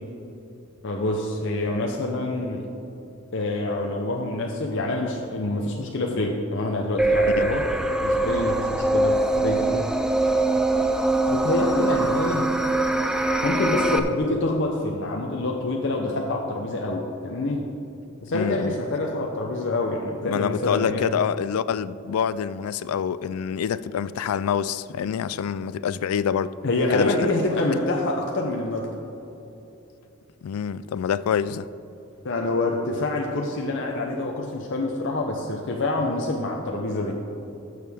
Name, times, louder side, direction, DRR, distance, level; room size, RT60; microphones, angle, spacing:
voice 1, 0.8-2.7 3.3-7.7 8.0-9.9 11.3-12.5 13.4-17.6 18.2-21.0 26.6-29.0 32.2-37.2, left 2 dB, 55° left, 0.7 m, -26 dB
sound 1, 7.0-14.0, right 2 dB, 5° right, 0.3 m, -23 dB
voice 2, 18.3-18.8 20.2-26.5 26.9-27.1 30.4-31.7, left 8 dB, 80° left, 0.3 m, -26 dB
14.5 x 6.5 x 3.5 m
head